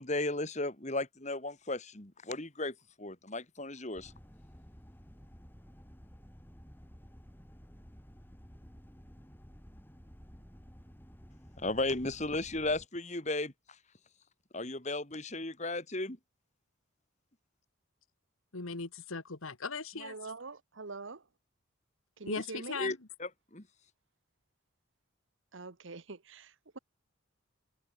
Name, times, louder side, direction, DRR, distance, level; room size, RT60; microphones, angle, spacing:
voice 1, 0.0-4.1 11.6-13.8 14.5-16.2 22.8-23.7, left 2 dB, 35° left, 2.5 m, -35 dB
sound 1, 3.9-12.9, equal, 10° left, 3.7 m, -53 dB
voice 2, 18.5-20.3 22.2-23.0, left 4 dB, 80° left, 1.6 m, -39 dB
voice 3, 20.0-21.2 22.2-22.8 25.5-26.8, right 3 dB, 65° right, 1.1 m, -44 dB
head